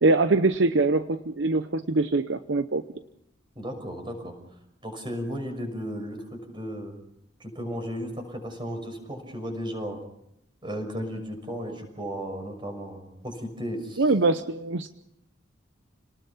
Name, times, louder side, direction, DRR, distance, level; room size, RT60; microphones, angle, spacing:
voice 1, 0.0-2.8 14.0-14.9, right 3 dB, 65° right, 10 dB, 0.8 m, -23 dB
voice 2, 3.5-4.3 4.8-7.0 7.4-10.0 10.6-14.0, equal, 25° right, 4 dB, 6.0 m, -35 dB
29.5 x 19.0 x 5.7 m, 0.77 s
head